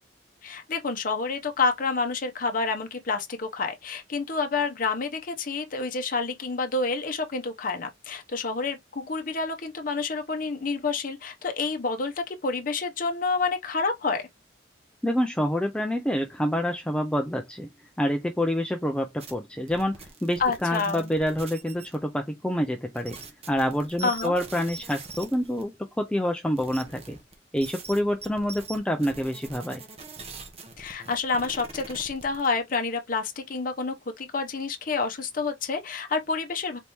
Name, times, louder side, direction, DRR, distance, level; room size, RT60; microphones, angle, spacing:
voice 1, 0.4-14.3 20.4-21.1 24.0-24.3 30.8-36.8, left 4 dB, 45° left, 0.7 m, -28 dB
voice 2, 15.0-17.7 18.0-23.2 23.5-25.7 26.0-27.2 27.5-29.8, equal, 5° left, 0.4 m, -27 dB
sound 1, 19.2-19.3 19.7-22.0 22.9-25.6 26.6-32.5, right 4 dB, 35° right, 1.0 m, -43 dB
4.1 x 2.9 x 3.4 m
head